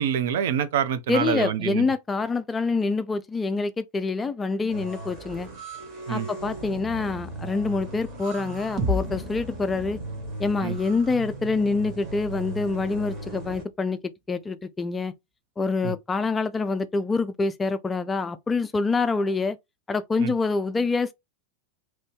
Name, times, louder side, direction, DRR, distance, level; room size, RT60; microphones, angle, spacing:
voice 1, 0.0-1.9 6.1-6.3 10.6-10.8 15.8-15.9 20.2-20.3, right 9 dB, 55° right, 0.4 m, -26 dB
voice 2, 1.1-5.5 6.1-10.0 10.4-14.0 14.3-15.1 15.6-19.6 19.9-21.1, left 4 dB, 15° left, 0.3 m, -26 dB
sound 1, 4.7-13.6, right 2 dB, 40° right, 1.4 m, -38 dB
sound 2, 8.8-12.7, equal, 20° right, 0.9 m, -34 dB
2.9 x 2.6 x 3.2 m
figure-of-eight pair, 90°, 0 cm